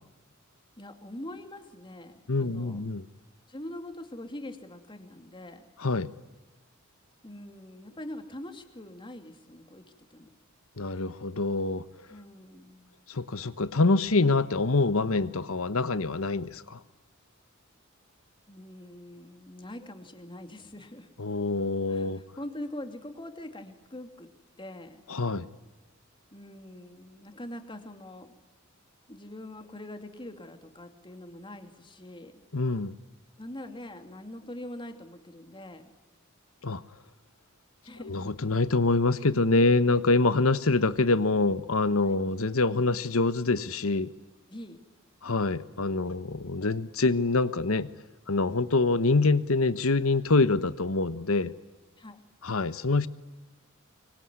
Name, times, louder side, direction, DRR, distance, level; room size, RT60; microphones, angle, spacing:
voice 1, 0.8-2.8 3.5-5.7 7.2-9.8 10.1-10.3 12.1-13.0 18.5-21.1 21.9-24.3 24.6-25.0 26.3-28.3 29.1-32.4 33.4-35.9 37.8-38.2 41.9-42.2 44.5-44.8 52.0-52.2, left 1 dB, 25° left, 6 dB, 2.8 m, -43 dB
voice 2, 2.3-3.1 5.8-6.1 10.8-11.8 13.1-16.8 21.2-22.2 25.1-25.5 32.5-33.0 36.6-36.8 38.0-44.1 45.2-47.9 48.3-51.5 52.4-53.1, left 3 dB, 90° left, 14 dB, 1.2 m, -25 dB
25.0 x 24.5 x 9.7 m, 1.1 s
head